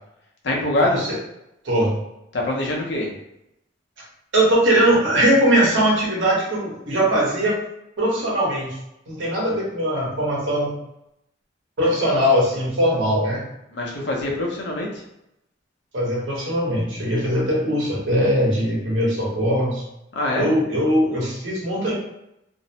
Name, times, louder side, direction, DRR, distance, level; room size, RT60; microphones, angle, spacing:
voice 1, 0.4-1.1 2.3-3.1 13.7-15.0 20.1-20.5, left 1 dB, 65° left, -2 dB, 0.6 m, -24 dB
voice 2, 4.3-7.6 8.0-8.8 9.1-10.7 11.8-13.4 15.9-19.8 20.3-21.9, equal, 85° right, -4 dB, 1.0 m, -20 dB
2.6 x 2.0 x 2.7 m, 0.83 s
head